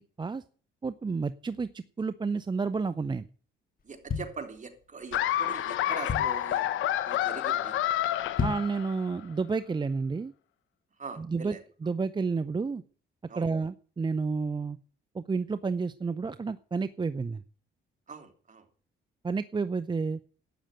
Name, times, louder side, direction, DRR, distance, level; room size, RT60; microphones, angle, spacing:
voice 1, 0.8-3.2 8.4-10.3 11.2-11.5 11.8-12.8 13.4-14.8 15.1-17.4 19.2-20.2, right 4 dB, 20° right, 0.6 m, -30 dB
sound 1, 3.8-5.0 5.5-5.6 5.8-6.6 7.0-7.3 7.6-7.7 8.2-8.8 9.2-9.3, left 5 dB, 45° left, 2.2 m, -33 dB
voice 2, 3.8-6.6 7.0-7.8 11.0-11.6 13.3-13.5 18.1-18.7, right 5 dB, 40° right, 3.2 m, -42 dB
Laughter, 5.1-9.1, left 12 dB, 85° left, 1.1 m, -29 dB
12.0 x 9.0 x 8.9 m
cardioid pair, 90°, 20 cm